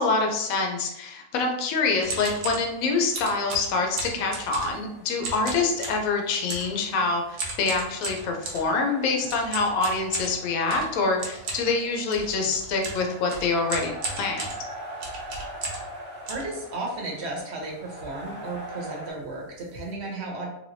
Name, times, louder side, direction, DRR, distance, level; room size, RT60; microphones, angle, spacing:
voice 1, 0.0-14.5, left 3 dB, 70° left, 2 dB, 1.0 m, -26 dB
sound 1, 2.0-2.7 3.1-4.9 5.2-6.1 6.5-6.8 7.4-8.7 9.3-15.9 16.3-17.1 17.6-17.7 17.9-18.2 18.4-18.6 19.2-19.3 19.6-19.9, right 3 dB, 85° right, 1.3 m, -35 dB
sound 2, 2.6-19.1, equal, 10° left, 0.5 m, -43 dB
voice 2, 16.3-20.5, right 2 dB, 55° right, -1 dB, 1.0 m, -34 dB
3.3 x 2.9 x 2.6 m, 0.83 s
omnidirectional pair, 1.6 m